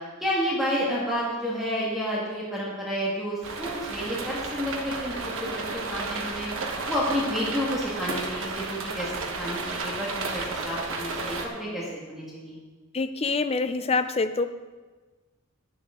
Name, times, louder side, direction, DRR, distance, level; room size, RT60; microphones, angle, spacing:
voice 1, 0.2-6.5 6.9-12.6, equal, ahead, -6 dB, 1.8 m, -30 dB
sound 1, 3.4-11.5, right 3 dB, 65° right, 1.1 m, -33 dB
voice 2, 12.9-14.5, left 3 dB, 30° left, 10 dB, 0.5 m, -25 dB
10.0 x 10.0 x 3.7 m, 1.3 s
head